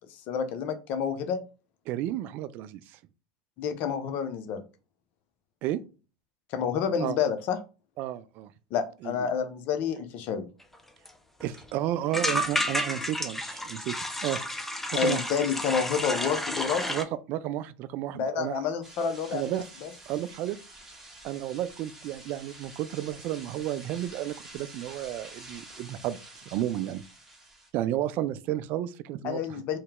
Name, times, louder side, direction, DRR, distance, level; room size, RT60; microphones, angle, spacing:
voice 1, 0.1-1.4 3.6-4.6 6.5-7.6 8.7-10.5 14.9-16.8 18.1-19.9 29.2-29.8, left 7 dB, 50° left, 0.7 m, -29 dB
voice 2, 1.9-3.0 5.6-5.8 7.0-7.2 8.0-8.5 9.0-9.2 11.4-14.4 14.9-15.2 16.9-18.6 19.3-19.6 20.1-20.6 21.2-27.0 27.7-29.6, right 13 dB, 50° right, 0.3 m, -32 dB
sound 1, 10.7-10.8 11.1-11.2 11.4-11.6 12.1-17.0, left 1 dB, 5° left, 0.6 m, -31 dB
sound 2, 18.8-27.7, right 2 dB, 10° right, 1.5 m, -48 dB
3.1 x 2.8 x 3.6 m
hypercardioid pair, 95°, 4 cm